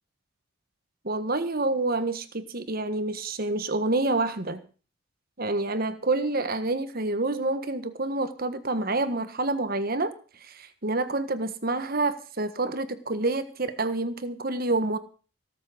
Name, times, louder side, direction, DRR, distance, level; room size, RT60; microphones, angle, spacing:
voice 1, 1.0-4.6 5.4-10.1 10.4-15.0, right 2 dB, 45° right, 11 dB, 1.5 m, -28 dB
17.5 x 7.5 x 8.0 m, 0.38 s
head